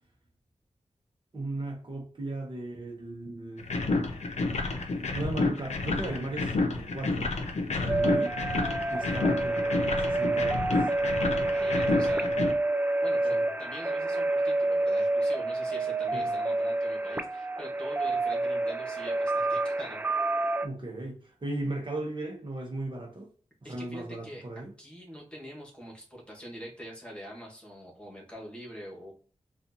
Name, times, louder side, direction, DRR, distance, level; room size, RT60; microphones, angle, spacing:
voice 1, 1.3-3.7 5.1-7.3 7.7-8.3 8.9-10.7 13.3-13.4 16.1-16.3 20.6-23.3 23.6-24.7, right 2 dB, 40° right, 0 dB, 1.1 m, -37 dB
sound 1, 3.6-12.5, left 3 dB, 60° left, 0.7 m, -30 dB
sound 2, 7.9-20.7, right 2 dB, 15° right, 0.4 m, -28 dB
voice 2, 11.4-12.3 13.0-20.0 23.6-29.1, equal, 10° left, -3 dB, 1.5 m, -44 dB
4.2 x 2.5 x 2.8 m, 0.42 s
wide cardioid pair, 80°, 13 cm